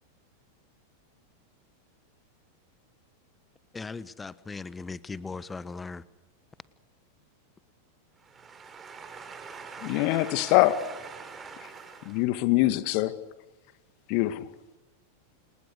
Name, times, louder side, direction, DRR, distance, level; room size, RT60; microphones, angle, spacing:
voice 1, 3.7-6.0, left 4 dB, 15° left, 1.3 m, -38 dB
voice 2, 8.2-12.3, right 5 dB, 20° right, 6.3 m, -44 dB
voice 3, 9.8-10.8 12.1-13.2 14.1-14.4, left 17 dB, 45° left, 2.1 m, -23 dB
30.0 x 28.0 x 6.6 m
figure-of-eight pair, 90°, 0 cm